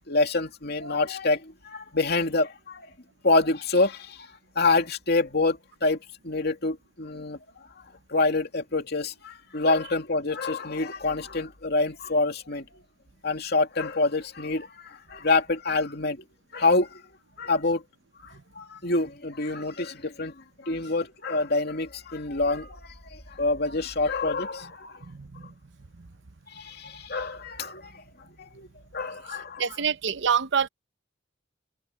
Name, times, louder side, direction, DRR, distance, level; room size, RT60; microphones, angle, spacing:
voice 1, 0.1-2.9 3.2-4.3 4.6-6.0 6.2-7.4 7.8-7.9 8.1-12.6 13.2-16.2 16.5-17.0 17.4-17.8 18.2-20.3 20.6-25.0 26.5-27.9 28.4-28.7 28.9-29.6, left 3 dB, 55° left, 2.7 m, -26 dB
voice 2, 25.0-25.5 26.0-26.1 29.6-30.7, right 7 dB, 65° right, 0.8 m, -26 dB
open air
head